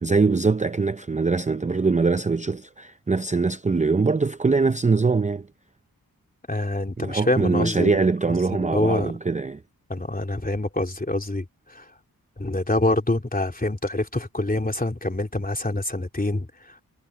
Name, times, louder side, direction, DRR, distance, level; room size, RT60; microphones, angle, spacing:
voice 1, 0.0-5.5 7.0-9.6, right 4 dB, 20° right, 0.5 m, -22 dB
voice 2, 6.5-9.1 9.9-11.9 12.4-16.8, left 2 dB, 25° left, 3.4 m, -26 dB
cardioid pair, 55°, 37 cm